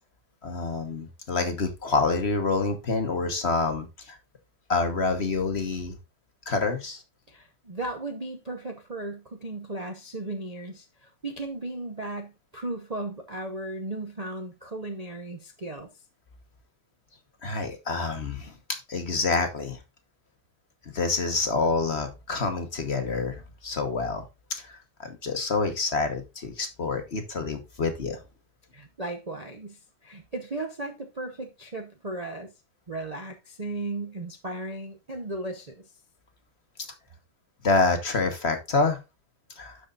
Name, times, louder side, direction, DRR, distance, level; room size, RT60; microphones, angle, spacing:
voice 1, 0.4-4.2 4.7-6.0 6.5-7.0 17.4-18.5 18.9-19.8 20.8-28.2 37.6-39.0 39.6-39.8, left 3 dB, 40° left, 1.1 m, -27 dB
voice 2, 7.3-15.9 28.7-32.5 32.9-35.9, right 2 dB, 70° right, 0.3 m, -36 dB
12.0 x 5.0 x 2.5 m
omnidirectional pair, 2.3 m